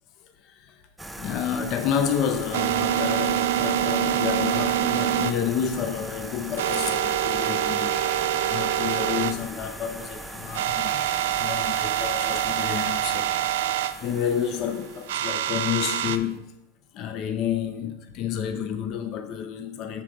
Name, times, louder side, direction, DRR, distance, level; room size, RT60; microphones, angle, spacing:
voice 1, 0.4-0.7 1.2-8.0 8.5-13.3 14.0-16.4 16.9-20.0, left 8 dB, 45° left, 0.6 m, -29 dB
sound 1, 1.0-16.4, right 1 dB, ahead, 0.4 m, -40 dB
sound 2, 1.4-9.3 9.6-9.7 10.1-10.2 10.5-13.9 15.1-16.2, right 11 dB, 75° right, 0.4 m, -26 dB
7.4 x 3.3 x 5.1 m
supercardioid pair, 125°, 0 cm